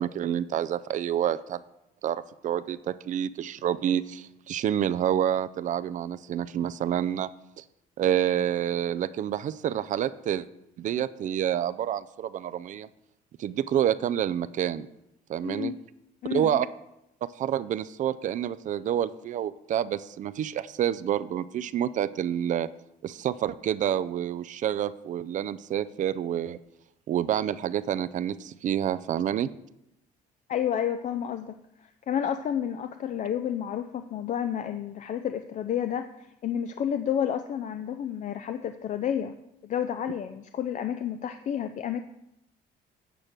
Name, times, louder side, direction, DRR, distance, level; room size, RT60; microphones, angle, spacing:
voice 1, 0.0-1.6 2.0-7.3 7.6-7.7 8.0-10.5 10.8-12.9 13.4-14.9 15.3-15.7 16.3-16.7 17.2-22.7 23.0-26.6 27.1-29.5, right 10 dB, 50° right, 14 dB, 0.4 m, -28 dB
voice 2, 15.4-15.7 16.2-16.6 30.5-39.3 39.6-42.0, left 9 dB, 45° left, 9 dB, 0.4 m, -30 dB
8.9 x 5.0 x 6.1 m, 0.86 s
cardioid pair, 110°, 17 cm